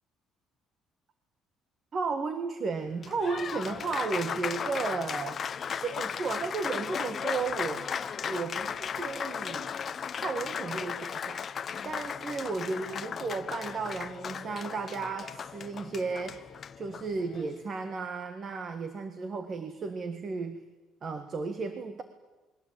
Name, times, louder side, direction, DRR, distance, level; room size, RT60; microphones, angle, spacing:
voice 1, 1.9-5.4 5.7-8.0 8.2-9.7 10.2-11.5 11.8-16.4 16.8-20.6 21.0-22.0, right 4 dB, 30° right, 9 dB, 1.6 m, -34 dB
Applause, 2.9-17.6, left 7 dB, 30° left, 0.8 m, -36 dB
28.5 x 22.0 x 8.7 m, 1.1 s
cardioid pair, 170°, 0 cm